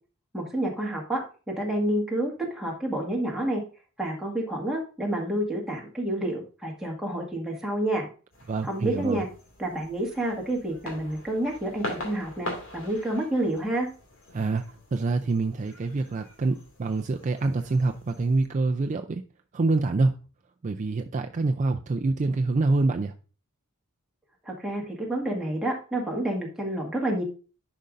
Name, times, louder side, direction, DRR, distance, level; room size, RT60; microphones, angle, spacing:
voice 1, 0.3-1.2 1.6-3.6 4.0-8.1 8.6-9.3 9.6-13.9 24.5-27.2, right 1 dB, 5° right, -2 dB, 1.8 m, -29 dB
sound 1, 8.3-18.5, left 1 dB, 65° left, 2.3 m, -43 dB
voice 2, 8.5-9.2 14.3-14.6 14.9-19.2 19.5-20.1 20.6-23.1, right 3 dB, 35° right, 5 dB, 0.4 m, -26 dB
10.5 x 5.2 x 2.5 m, 0.36 s
head